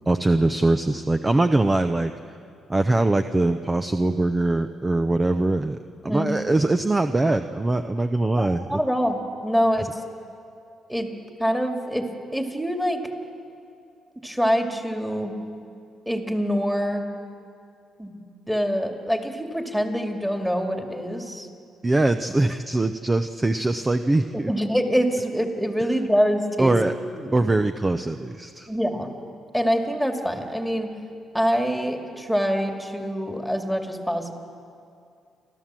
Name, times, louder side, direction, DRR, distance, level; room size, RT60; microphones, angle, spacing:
voice 1, 0.1-2.1 2.7-5.8 6.0-8.8 21.8-24.5 26.6-26.9 27.3-28.7, right 2 dB, 20° right, 8 dB, 0.7 m, -22 dB
voice 2, 8.4-10.0 10.9-11.1 11.4-13.0 14.2-15.3 16.1-17.1 18.0-21.5 24.3-26.8 27.1-27.3 28.7-29.1 29.5-30.9 31.3-34.3, equal, 5° right, 3 dB, 2.3 m, -25 dB
29.0 x 13.0 x 7.5 m, 2.5 s
cardioid pair, 90°, 0 cm